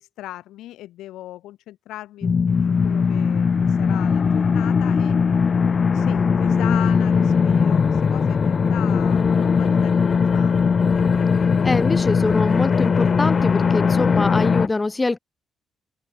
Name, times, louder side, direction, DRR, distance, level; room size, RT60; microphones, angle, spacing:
voice 1, 0.0-2.3 2.6-5.2 5.9-10.8, left 14 dB, 85° left, 3.0 m, -37 dB
sound 1, 2.2-14.7, left 5 dB, 40° left, 0.9 m, -19 dB
voice 2, 11.6-15.2, left 3 dB, 20° left, 2.9 m, -24 dB
open air
cardioid pair, 90°, 0 cm